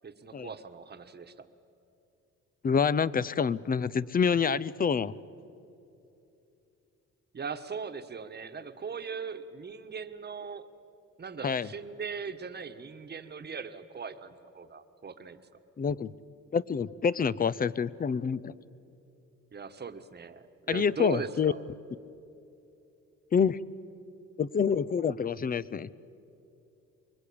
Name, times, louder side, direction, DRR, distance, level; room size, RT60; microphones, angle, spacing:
voice 1, 0.0-1.5 7.3-10.7 11.2-15.4 19.5-21.6, right 5 dB, 35° right, 9 dB, 1.3 m, -40 dB
voice 2, 2.6-5.2 11.4-11.7 15.8-16.1 16.5-18.5 20.7-21.5 23.3-23.6 24.4-25.9, left 6 dB, 30° left, 20 dB, 0.6 m, -27 dB
25.0 x 21.5 x 8.7 m, 2.8 s
cardioid pair, 90°, 30 cm